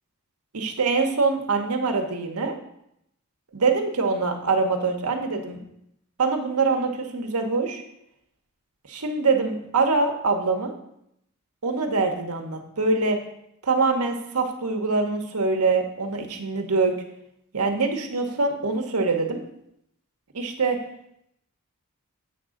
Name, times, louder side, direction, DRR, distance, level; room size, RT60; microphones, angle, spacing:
voice 1, 0.5-2.6 3.5-5.6 6.2-7.8 8.9-10.7 11.6-13.2 13.6-17.0 17.5-19.4 20.3-20.8, right 4 dB, 80° right, 4 dB, 1.1 m, -24 dB
7.7 x 3.7 x 6.3 m, 0.77 s
head